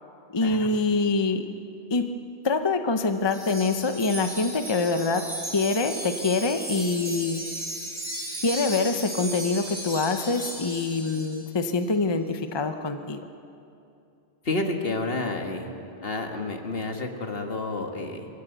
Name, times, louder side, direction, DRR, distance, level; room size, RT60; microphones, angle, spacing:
voice 1, 0.3-1.5 1.9-2.1 2.4-5.3 5.5-7.4 8.4-13.2, left 3 dB, 30° left, 7 dB, 0.7 m, -25 dB
Wind chime, 3.3-11.5, right 1 dB, 60° right, 4.1 m, -36 dB
voice 2, 14.4-15.7 16.0-18.3, left 2 dB, 65° left, 4 dB, 1.9 m, -30 dB
22.5 x 15.0 x 8.0 m, 2.6 s
omnidirectional pair, 1.1 m